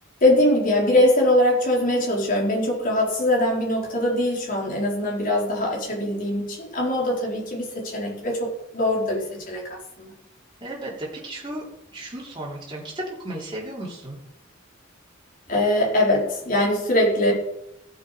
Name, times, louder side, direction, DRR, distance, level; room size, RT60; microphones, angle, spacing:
voice 1, 0.2-9.6 10.0-10.1 15.5-17.3, left 1 dB, 45° left, -2 dB, 4.2 m, -22 dB
voice 2, 10.6-11.6 11.9-14.2, right 1 dB, 25° right, -5 dB, 3.4 m, -34 dB
15.5 x 7.5 x 5.1 m, 0.83 s
head